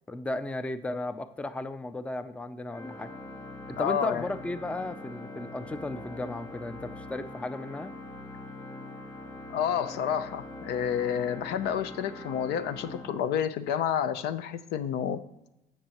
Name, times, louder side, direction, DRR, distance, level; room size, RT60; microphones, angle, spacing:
voice 1, 0.1-3.1 3.7-7.9, left 2 dB, 5° left, 12 dB, 0.4 m, -35 dB
Organ, 2.7-13.9, left 2 dB, 25° left, 2.4 m, -43 dB
voice 2, 3.8-4.2 9.5-15.2, left 8 dB, 80° left, 12 dB, 0.6 m, -29 dB
14.5 x 5.5 x 3.0 m, 0.90 s
cardioid pair, 110°, 17 cm